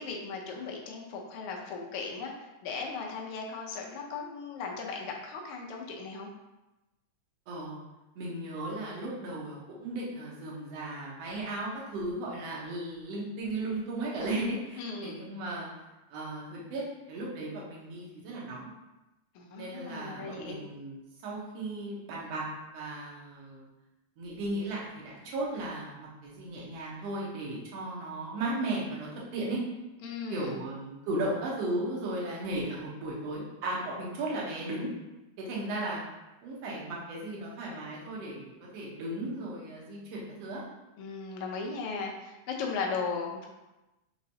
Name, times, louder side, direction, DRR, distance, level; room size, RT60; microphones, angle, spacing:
voice 1, 0.0-6.3 14.8-15.2 19.3-20.6 30.0-30.6 41.0-43.5, left 4 dB, 75° left, 0 dB, 1.3 m, -37 dB
voice 2, 7.5-7.8 8.2-15.7 16.1-18.7 19.5-23.7 24.2-29.6 30.3-34.9 35.4-36.0 36.4-40.6, right 1 dB, 65° right, -4 dB, 1.9 m, -36 dB
5.1 x 3.1 x 2.7 m, 1.0 s
omnidirectional pair, 3.3 m